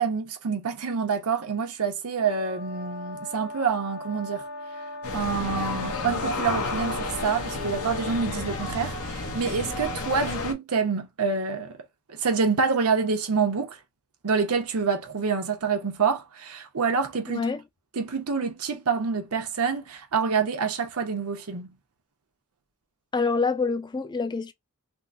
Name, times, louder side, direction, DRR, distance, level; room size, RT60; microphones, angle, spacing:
voice 1, 0.0-4.5 5.1-11.8 12.1-13.8 14.2-17.4 18.0-21.7, right 5 dB, 75° right, 0.8 m, -27 dB
sound 1, 2.2-8.4, left 1 dB, 60° left, 1.4 m, -39 dB
sound 2, 5.0-10.5, left 3 dB, 80° left, 0.8 m, -31 dB
voice 2, 17.3-17.6 23.1-24.5, left 4 dB, 20° left, 0.4 m, -26 dB
3.6 x 2.1 x 2.5 m
head